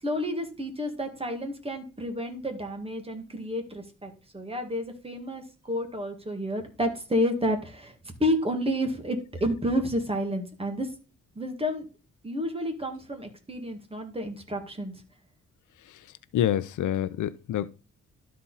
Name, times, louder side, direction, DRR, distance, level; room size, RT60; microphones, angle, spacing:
voice 1, 0.0-10.9 11.4-11.9 12.2-15.0, equal, 20° right, 1.8 m, -30 dB
voice 2, 16.3-17.7, left 11 dB, 80° left, 0.6 m, -27 dB
12.5 x 4.3 x 4.0 m
cardioid pair, 110°, 30 cm